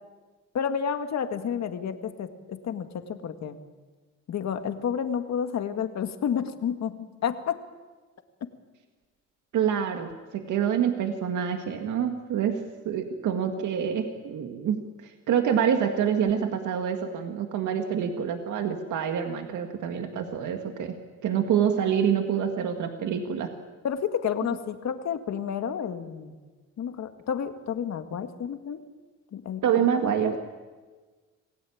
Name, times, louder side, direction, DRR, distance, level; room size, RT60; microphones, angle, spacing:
voice 1, 0.5-3.6 4.3-7.6 23.8-26.4 26.8-28.8 29.3-29.9, left 8 dB, 60° left, 7 dB, 2.0 m, -30 dB
voice 2, 9.5-14.9 15.3-20.9 21.2-23.5 29.6-30.4, right 8 dB, 75° right, 5 dB, 2.0 m, -26 dB
27.0 x 17.5 x 8.7 m, 1.4 s
cardioid pair, 90°, 30 cm